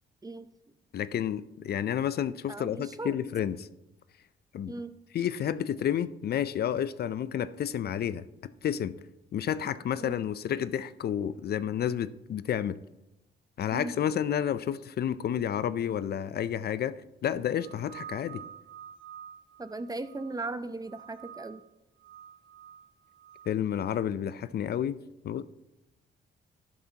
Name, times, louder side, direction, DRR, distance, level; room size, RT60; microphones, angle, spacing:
voice 1, 0.9-3.7 4.5-4.7 5.1-8.9 9.3-12.8 13.6-18.4 23.5-25.0 25.2-25.4, left 9 dB, 55° left, 15 dB, 0.5 m, -30 dB
voice 2, 2.5-3.2 4.7-4.9 10.0-10.2 13.7-13.9 19.6-21.6, right 2 dB, 20° right, 12 dB, 0.6 m, -37 dB
sound 1, 17.6-20.5 20.8-21.6 22.0-23.5, right 9 dB, 85° right, 2.2 m, -48 dB
11.5 x 11.0 x 2.9 m, 0.96 s
cardioid pair, 90°, 20 cm